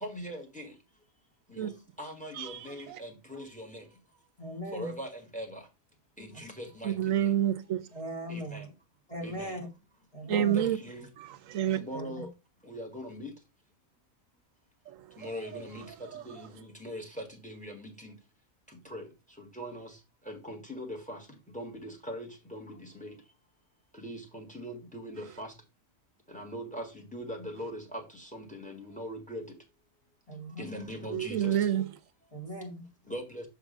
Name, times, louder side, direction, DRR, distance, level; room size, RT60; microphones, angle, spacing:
voice 1, 0.0-0.7 1.6-1.7 2.0-3.7 4.7-5.6 6.2-6.9 8.3-8.6 9.2-9.5 10.3-11.0 11.9-12.3 12.7-13.3 15.2-15.8 16.3-16.4 16.8-17.0 17.4-18.1 18.9-19.0 19.6-19.9 20.3-21.2 21.5-22.7 23.0-23.1 24.0-25.5 26.3-26.8 27.1-27.8 28.3-29.4 30.6-31.5 33.1-33.4, equal, 5° left, 1.5 m, -40 dB
voice 2, 4.4-4.9 7.9-8.7 9.1-9.7 10.1-10.6 11.9-12.3 30.3-30.6 32.3-32.9, equal, 25° left, 1.5 m, -39 dB
voice 3, 6.8-7.8 10.3-10.8 11.5-11.8 16.1-16.2 31.1-31.8, right 10 dB, 75° right, 1.1 m, -27 dB
6.6 x 3.7 x 5.0 m
omnidirectional pair, 1.4 m